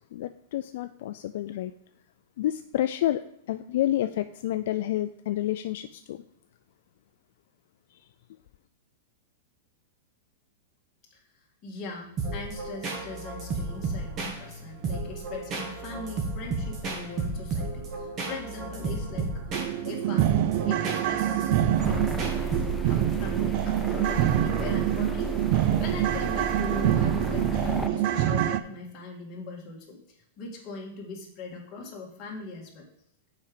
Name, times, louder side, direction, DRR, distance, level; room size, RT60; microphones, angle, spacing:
voice 1, 0.1-1.7 2.4-3.2 3.5-6.2 7.9-8.0, left 13 dB, 60° left, 0.3 m, -29 dB
voice 2, 11.6-19.3 19.7-22.1 22.9-30.0 30.4-32.9, left 3 dB, 30° left, 2.0 m, -40 dB
sound 1, 12.2-23.0, right 3 dB, 30° right, 1.5 m, -33 dB
sound 2, 18.6-18.7 19.1-19.2 19.5-28.6, right 12 dB, 45° right, 0.4 m, -26 dB
sound 3, 21.8-27.9, right 2 dB, 5° left, 0.5 m, -33 dB
7.1 x 4.9 x 5.1 m
supercardioid pair, 150°, 0 cm